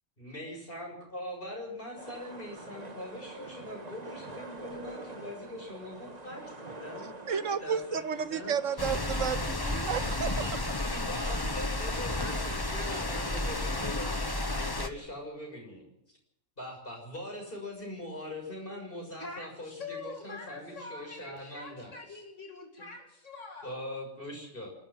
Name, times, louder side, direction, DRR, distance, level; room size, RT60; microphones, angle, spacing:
voice 1, 0.2-8.6 10.4-10.5 10.9-15.9 16.6-22.2 22.8-22.9 23.6-24.7, left 1 dB, 45° left, 1 dB, 7.0 m, -42 dB
sound 1, 2.0-9.0, right 2 dB, 30° right, 2.0 m, -45 dB
voice 2, 7.3-10.6, right 7 dB, 85° right, 13 dB, 1.4 m, -32 dB
sound 2, 8.8-14.9, left 2 dB, 20° left, 1.2 m, -32 dB
voice 3, 19.2-23.8, left 3 dB, 75° left, 3 dB, 2.8 m, -44 dB
27.0 x 13.0 x 7.4 m, 0.75 s
omnidirectional pair, 1.3 m